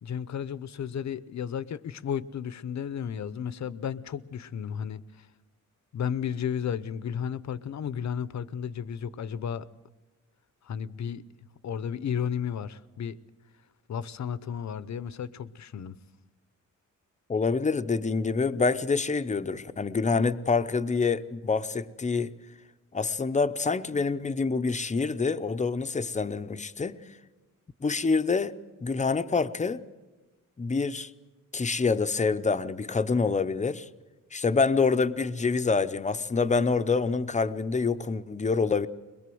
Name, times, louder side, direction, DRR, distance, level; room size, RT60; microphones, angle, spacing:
voice 1, 0.0-5.3 5.9-9.7 10.6-11.2 11.6-13.2 13.9-15.9, left 8 dB, 60° left, 0.8 m, -33 dB
voice 2, 17.3-22.3 22.9-27.0 27.8-28.5 28.8-29.8 30.6-31.1 31.5-33.9 34.3-38.9, left 4 dB, 25° left, 0.7 m, -26 dB
22.5 x 21.5 x 7.8 m
wide cardioid pair, 165°, 31 cm